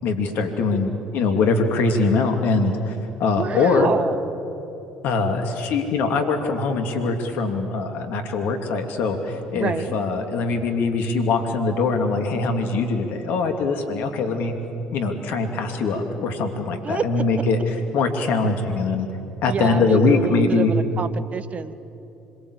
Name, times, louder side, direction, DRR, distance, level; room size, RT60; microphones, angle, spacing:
voice 1, 0.0-3.9 5.0-14.5 14.9-19.1 19.4-20.7, left 3 dB, 65° left, 5 dB, 2.8 m, -22 dB
voice 2, 3.4-4.2 9.5-10.0 16.8-17.3 19.5-21.7, right 6 dB, 40° right, 12 dB, 1.4 m, -28 dB
26.5 x 23.5 x 8.3 m, 2.9 s
hypercardioid pair, 60°, 3 cm